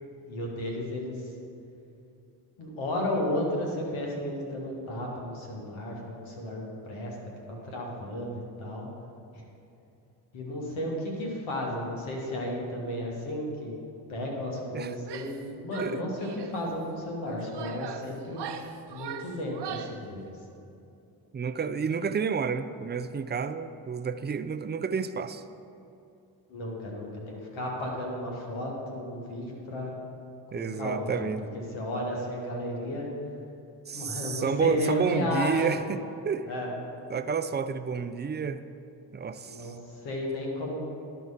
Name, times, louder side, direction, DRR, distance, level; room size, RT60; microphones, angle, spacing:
voice 1, 0.2-1.3 2.6-7.2 7.5-8.9 9.3-9.4 10.3-13.8 14.1-18.5 18.9-20.3 26.5-30.0 30.5-31.1 31.4-33.1 33.9-35.8 36.5-36.7 39.4-40.8, left 1 dB, 75° left, -1 dB, 2.0 m, -33 dB
Female speech woman speaking / Yell, 15.0-15.4 15.7-16.6 17.2-20.0, right 7 dB, 55° right, 0.8 m, -40 dB
voice 2, 21.3-25.4 30.5-31.4 33.9-36.5 37.1-38.6 39.1-39.7, right 6 dB, 20° right, 11 dB, 0.5 m, -30 dB
11.5 x 4.6 x 5.7 m, 2.8 s
hypercardioid pair, 45°, 48 cm